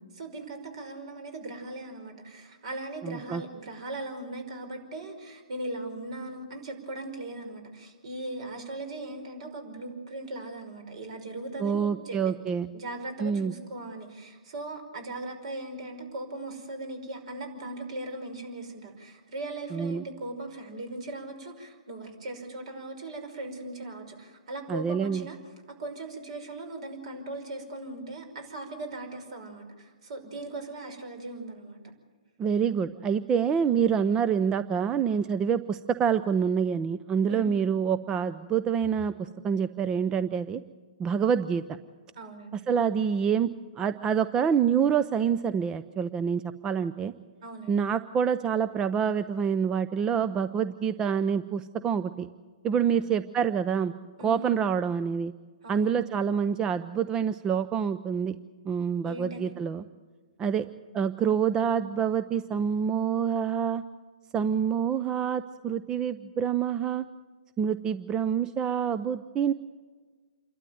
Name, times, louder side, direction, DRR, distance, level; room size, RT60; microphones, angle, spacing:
voice 1, 0.2-12.4 12.7-25.4 25.7-31.8 37.3-37.5 42.2-42.6 47.4-47.8 52.9-53.0 54.2-54.6 55.6-55.9 59.0-59.5, right 2 dB, 55° right, 6 dB, 5.5 m, -39 dB
voice 2, 3.0-3.4 11.6-12.7 13.2-13.5 19.7-20.0 24.7-25.3 32.4-39.1 39.4-40.6 41.0-41.6 42.5-43.5 43.8-47.1 47.7-52.3 52.6-53.9 54.2-55.3 55.7-58.4 58.6-59.8 60.4-60.7 60.9-63.8 64.3-67.0 67.6-69.5, right 7 dB, 20° right, 12 dB, 0.6 m, -26 dB
27.5 x 12.5 x 9.3 m, 1.4 s
hypercardioid pair, 130°, 4 cm